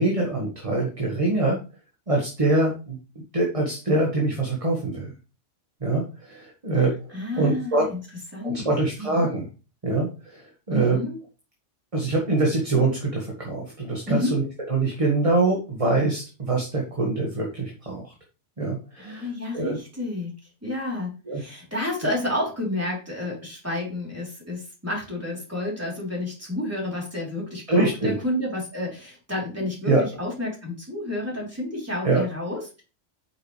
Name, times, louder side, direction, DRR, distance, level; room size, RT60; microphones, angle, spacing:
voice 1, 0.0-1.6 2.1-3.0 3.3-5.1 5.8-6.9 7.4-7.9 8.4-9.5 9.8-11.0 11.9-18.1 18.6-19.8 21.3-21.4 27.7-28.2 29.9-30.0 32.0-32.2, right 2 dB, 30° right, -1 dB, 1.8 m, -24 dB
voice 2, 7.1-8.0 8.3-8.6 9.0-9.3 10.7-11.2 14.1-14.4 19.0-20.3 20.6-29.9 30.2-32.8, left 1 dB, 10° right, -3 dB, 3.6 m, -30 dB
8.8 x 6.2 x 3.3 m, 0.33 s
omnidirectional pair, 1.2 m